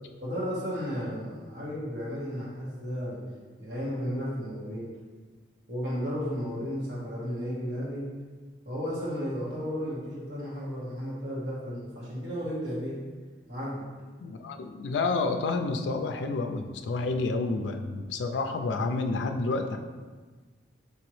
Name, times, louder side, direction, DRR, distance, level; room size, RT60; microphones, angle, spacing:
voice 1, 0.2-3.2 3.6-4.9 5.7-8.1 8.6-13.0 13.5-13.8, equal, 65° right, -8 dB, 1.4 m, -33 dB
voice 2, 14.2-19.8, left 3 dB, 85° left, 5 dB, 0.3 m, -29 dB
5.5 x 2.9 x 3.1 m, 1.4 s
head